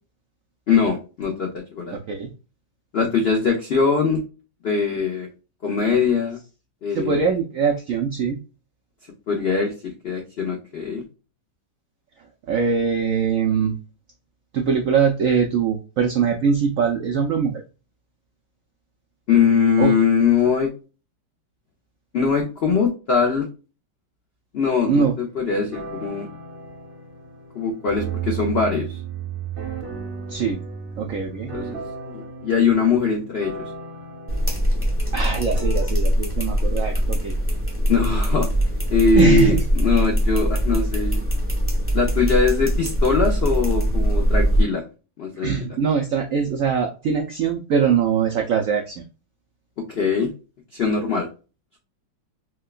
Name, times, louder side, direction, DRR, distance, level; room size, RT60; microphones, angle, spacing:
voice 1, 0.7-1.9 2.9-4.2 4.6-5.3 5.6-6.4 6.8-7.3 9.3-11.0 19.3-20.7 22.1-23.5 24.5-26.3 27.5-29.0 31.5-33.6 37.9-38.5 38.9-41.2 41.9-44.8 45.2-45.5 49.9-50.3 50.7-51.3, left 5 dB, 75° left, 1 dB, 0.5 m, -21 dB
voice 2, 1.9-2.3 6.9-8.4 12.5-13.7 14.5-17.6 19.8-19.9 24.9-25.1 30.3-30.6 31.0-31.5 35.1-37.3 39.2-39.6 45.4-49.0, right 6 dB, 80° right, 3 dB, 0.7 m, -22 dB
sound 1, 25.5-35.9, right 6 dB, 45° right, 0.8 m, -34 dB
sound 2, 34.3-44.6, equal, 10° left, 0.6 m, -22 dB
4.5 x 2.2 x 2.3 m, 0.32 s
omnidirectional pair, 2.0 m